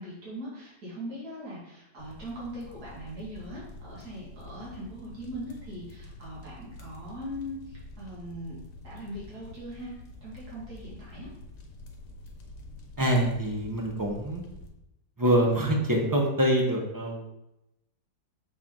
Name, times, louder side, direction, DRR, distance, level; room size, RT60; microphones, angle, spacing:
voice 1, 0.0-8.6 8.8-9.9 10.2-11.3, equal, 65° right, -7 dB, 2.7 m, -40 dB
sound 1, 2.0-14.7, left 2 dB, 60° left, 1.3 m, -47 dB
voice 2, 13.0-14.4 15.2-17.2, right 1 dB, 20° right, -1 dB, 0.5 m, -25 dB
6.6 x 4.5 x 3.8 m, 0.89 s
omnidirectional pair, 1.8 m